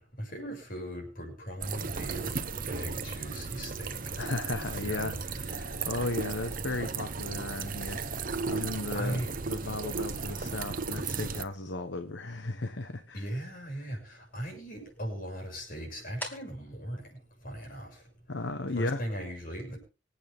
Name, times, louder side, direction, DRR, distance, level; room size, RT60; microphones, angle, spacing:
voice 1, 0.0-2.3 2.6-4.1 4.8-5.1 8.9-9.3 13.1-18.0 18.8-19.8, equal, 45° left, 1 dB, 6.6 m, -38 dB
sound 1, 1.6-11.4, right 4 dB, 45° right, 1.0 m, -35 dB
voice 2, 4.2-9.2 9.5-13.3 18.3-19.0, left 2 dB, 65° left, 8 dB, 1.2 m, -35 dB
sound 2, 4.5-18.1, equal, 10° left, 2.4 m, -54 dB
25.5 x 8.5 x 3.6 m, 0.32 s
head